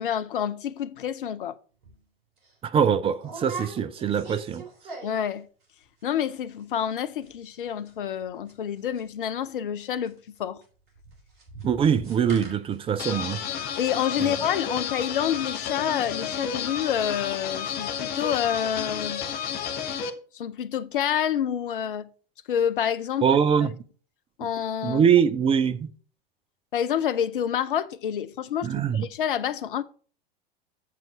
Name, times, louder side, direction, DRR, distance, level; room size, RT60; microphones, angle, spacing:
voice 1, 0.0-1.6 5.0-5.5 6.0-10.6 13.8-19.2 20.3-22.1 22.5-23.3 23.6-23.7 24.4-25.1 26.7-29.8, left 9 dB, 65° left, 0.7 m, -28 dB
sound 1, 1.8-2.0 2.4-2.5 3.2-5.4 5.6-6.0 6.3-6.4 6.6-7.0 7.2-9.5 9.8-18.8 19.1-19.6 19.8-19.9, right 3 dB, 55° right, 3.9 m, -44 dB
voice 2, 2.6-4.6 11.6-13.4 23.2-23.8 24.8-25.9 28.6-29.1, right 7 dB, 20° right, 0.6 m, -23 dB
sound 2, 13.0-20.1, left 7 dB, 30° left, 1.0 m, -31 dB
7.5 x 7.4 x 3.7 m
figure-of-eight pair, 90°, 29 cm